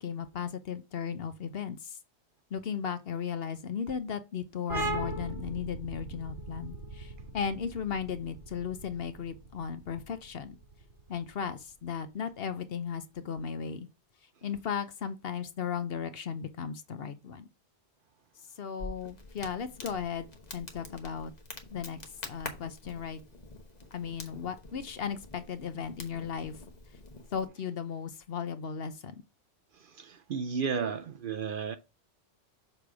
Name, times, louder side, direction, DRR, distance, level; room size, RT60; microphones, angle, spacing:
voice 1, 0.0-2.0 2.5-10.6 11.1-13.9 14.4-17.5 18.6-21.3 21.7-23.2 23.9-26.5 27.3-29.2, left 7 dB, 60° left, 0.9 m, -36 dB
sound 1, 4.7-12.0, right 2 dB, 90° right, 2.5 m, -39 dB
Crackle, 18.8-27.5, left 2 dB, 40° left, 1.2 m, -46 dB
voice 2, 30.0-31.8, right 6 dB, 60° right, 0.6 m, -33 dB
6.8 x 3.3 x 5.9 m
omnidirectional pair, 1.2 m